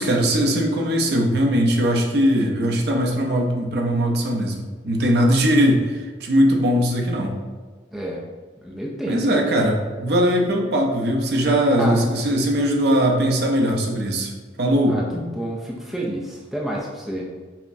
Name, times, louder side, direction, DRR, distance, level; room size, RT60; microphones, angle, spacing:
voice 1, 0.0-7.4 9.1-14.3 14.6-15.0, equal, 60° right, 1 dB, 0.5 m, -20 dB
voice 2, 8.6-9.5 11.8-12.0 14.9-17.3, equal, ahead, -4 dB, 0.3 m, -29 dB
5.5 x 2.0 x 2.6 m, 1.4 s
head